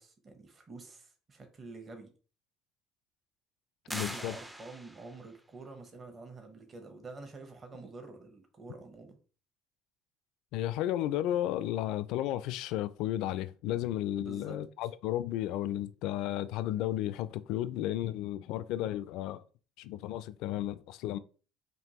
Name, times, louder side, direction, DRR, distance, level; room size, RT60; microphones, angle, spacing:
voice 1, 0.0-2.1 3.9-9.2 14.2-14.6, right 3 dB, 30° right, 1.0 m, -48 dB
voice 2, 3.9-4.3 10.5-19.4 19.8-21.2, left 13 dB, 70° left, 0.3 m, -33 dB
sound 1, 3.9-5.3, right 1 dB, 5° right, 0.4 m, -42 dB
5.1 x 2.7 x 3.0 m
supercardioid pair, 110°, 0 cm